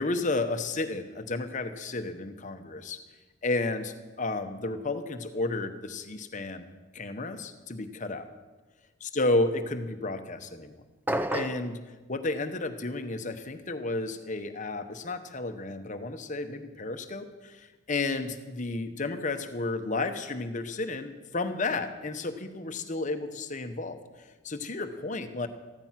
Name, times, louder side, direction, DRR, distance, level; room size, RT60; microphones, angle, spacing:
voice 1, 0.0-3.0 3.4-6.6 6.9-8.3 9.0-10.8 11.3-11.8 12.1-25.5, left 2 dB, 35° left, 8 dB, 1.0 m, -32 dB
sound 1, 11.1-11.7, right 1 dB, 10° right, 0.5 m, -29 dB
14.5 x 14.0 x 5.9 m, 1.3 s
head